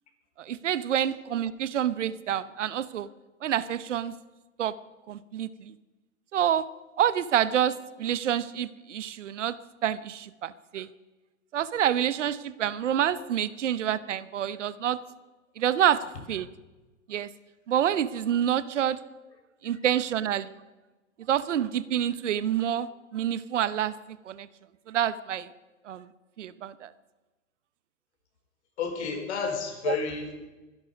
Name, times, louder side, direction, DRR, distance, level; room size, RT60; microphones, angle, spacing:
voice 1, 0.4-3.1 3.4-4.1 4.6-4.7 5.1-5.7 6.3-6.6 7.0-9.5 9.8-10.9 11.5-15.0 15.6-16.0 16.3-16.5 17.1-17.3 17.7-19.0 19.6-20.5 21.3-22.9 23.1-23.9 24.3-24.5 24.9-25.5 25.9-26.0 26.4-26.9 29.9-30.0, right 10 dB, 65° right, 16 dB, 1.0 m, -27 dB
voice 2, 28.8-30.3, left 5 dB, 55° left, 6 dB, 4.2 m, -31 dB
24.0 x 11.5 x 5.3 m, 1.2 s
figure-of-eight pair, 115°, 39 cm